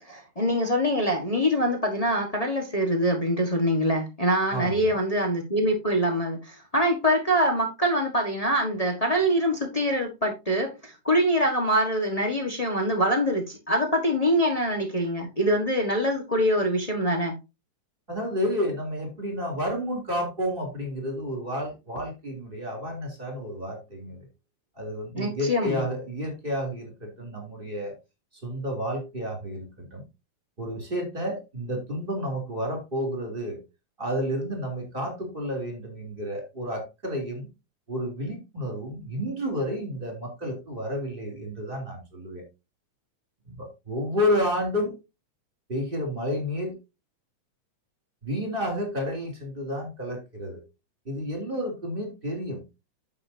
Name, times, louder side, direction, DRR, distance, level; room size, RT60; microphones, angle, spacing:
voice 1, 0.0-17.3 25.1-25.8, equal, 50° left, 1 dB, 0.4 m, -24 dB
voice 2, 4.5-4.9 18.1-24.2 24.7-28.0 28.4-30.0 30.6-33.6 34.0-37.5 37.9-42.4 43.5-44.9 45.7-46.8 48.2-50.6 51.0-52.6, equal, 15° right, 3 dB, 3.3 m, -30 dB
9.9 x 7.8 x 2.8 m, 0.26 s
omnidirectional pair, 3.6 m